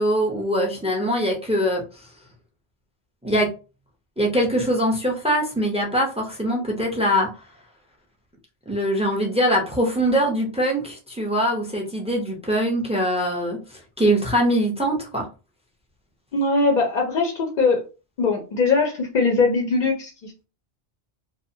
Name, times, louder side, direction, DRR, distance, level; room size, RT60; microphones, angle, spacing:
voice 1, 0.0-1.8 3.2-3.5 4.2-7.3 8.7-15.3, equal, 10° right, 0 dB, 0.3 m, -22 dB
voice 2, 16.3-17.8 18.2-20.4, left 3 dB, 55° left, 1 dB, 0.5 m, -21 dB
2.7 x 2.0 x 2.6 m, 0.32 s
omnidirectional pair, 1.2 m